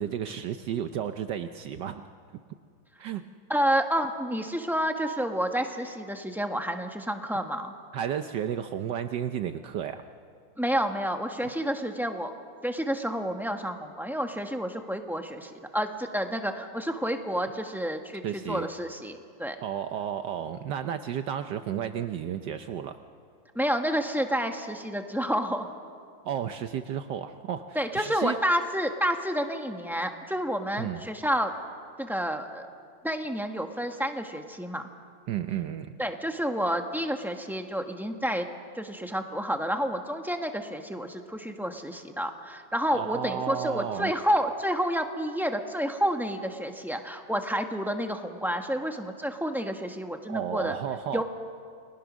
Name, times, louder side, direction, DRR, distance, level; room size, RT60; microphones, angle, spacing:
voice 1, 0.0-2.0 3.0-3.2 7.9-10.0 18.2-18.7 19.6-23.0 26.2-28.4 30.8-31.0 35.3-36.0 42.9-44.1 50.3-51.2, right 9 dB, 70° right, 8 dB, 1.3 m, -32 dB
voice 2, 3.5-7.7 10.6-12.3 12.6-19.6 23.5-25.7 27.7-31.5 32.0-32.6 33.0-34.9 36.0-38.5 38.7-50.8 51.1-51.2, equal, ahead, 4 dB, 0.9 m, -29 dB
30.0 x 21.5 x 6.2 m, 2.2 s
omnidirectional pair, 2.1 m